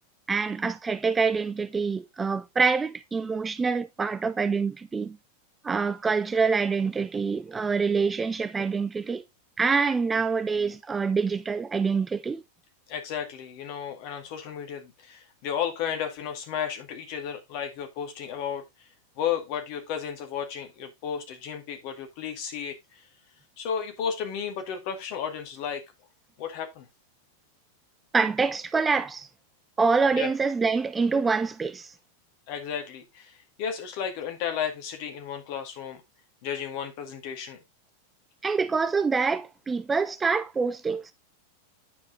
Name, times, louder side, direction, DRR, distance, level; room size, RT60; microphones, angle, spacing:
voice 1, 0.3-5.2 5.6-9.2 9.6-12.4 28.1-29.3 29.8-31.9 38.4-41.1, right 5 dB, 15° right, 0.4 m, -26 dB
voice 2, 12.9-18.9 19.2-23.0 23.6-25.8 26.4-26.9 30.1-30.3 32.5-36.0 36.4-37.6, left 8 dB, 45° left, 2.2 m, -33 dB
9.6 x 4.8 x 3.7 m
figure-of-eight pair, 90°, 0 cm